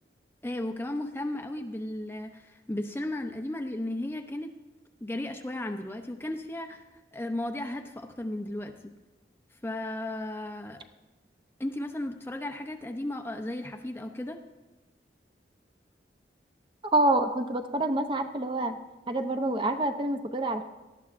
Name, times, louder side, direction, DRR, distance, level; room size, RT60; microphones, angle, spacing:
voice 1, 0.4-4.5 5.0-6.8 7.1-8.7 9.6-10.8 11.6-14.4, left 1 dB, 15° left, 5 dB, 0.6 m, -35 dB
voice 2, 16.9-18.7 19.1-20.6, right 2 dB, 25° right, 6 dB, 0.6 m, -27 dB
18.0 x 12.5 x 2.5 m, 1.1 s
head